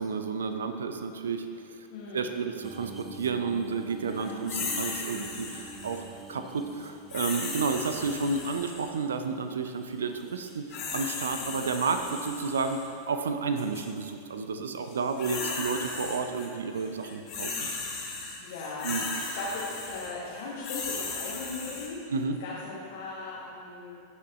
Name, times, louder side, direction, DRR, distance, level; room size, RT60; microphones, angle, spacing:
voice 1, 0.0-1.9 2.1-6.0 6.3-12.8 13.1-17.7 18.8-19.1 22.1-22.4, right 4 dB, 65° right, 7 dB, 0.5 m, -31 dB
voice 2, 1.9-2.5 4.0-4.4 18.4-22.1 22.4-24.0, left 3 dB, 55° left, -6 dB, 1.4 m, -39 dB
sound 1, 2.6-10.9 11.5-12.3 13.5-13.8 15.6-15.7, right 2 dB, 15° right, 0.6 m, -48 dB
sound 2, 4.5-6.1 7.1-9.0 10.4-12.8 13.6-13.8 14.9-16.5 16.8-21.9, left 4 dB, 35° left, 2.3 m, -36 dB
15.0 x 6.2 x 3.0 m, 2.5 s
figure-of-eight pair, 90°, 0 cm